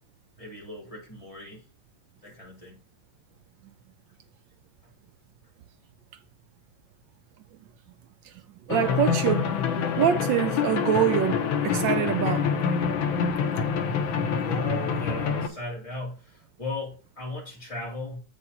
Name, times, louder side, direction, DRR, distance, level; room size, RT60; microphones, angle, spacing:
voice 1, 0.4-1.6 2.2-2.8 14.1-18.2, left 2 dB, 15° left, 3.7 m, -37 dB
sound 1, 8.7-15.5, left 6 dB, 90° left, 1.8 m, -26 dB
voice 2, 8.7-11.4 11.6-12.4, right 10 dB, 75° right, 1.3 m, -25 dB
8.5 x 5.7 x 4.2 m
omnidirectional pair, 2.1 m